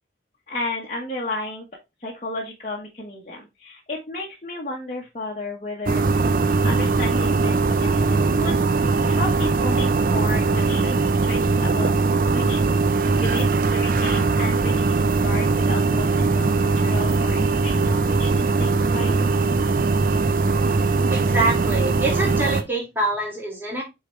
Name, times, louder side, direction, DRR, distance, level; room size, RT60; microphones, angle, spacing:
voice 1, 0.5-1.6 2.0-8.7 9.1-11.9 12.3-12.6 13.1-16.4 16.8-19.3, left 2 dB, 40° left, -4 dB, 1.3 m, -33 dB
sound 1, 5.9-22.6, right 3 dB, 50° right, 0.5 m, -20 dB
voice 2, 21.1-23.8, right 2 dB, 10° right, -2 dB, 2.4 m, -25 dB
8.0 x 3.8 x 3.1 m, 0.23 s
head